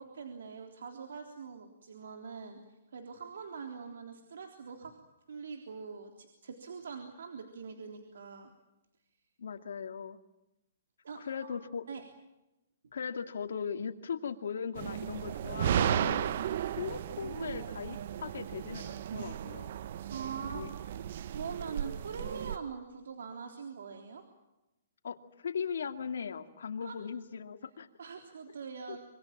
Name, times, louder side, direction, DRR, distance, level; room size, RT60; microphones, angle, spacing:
voice 1, 0.0-4.9 5.3-8.5 11.0-11.6 11.9-12.0 20.1-20.6 21.2-24.2 26.8-27.0 28.0-29.1, right 5 dB, 80° right, 4 dB, 3.6 m, -43 dB
voice 2, 9.4-10.2 11.2-11.8 12.9-16.4 16.7-19.7 20.5-20.7 25.0-27.9 28.9-29.0, left 6 dB, 80° left, 7 dB, 2.5 m, -38 dB
sound 1, 14.8-22.6, right 10 dB, 50° right, 0.8 m, -35 dB
25.5 x 24.5 x 7.5 m, 0.94 s
hypercardioid pair, 165°, 0 cm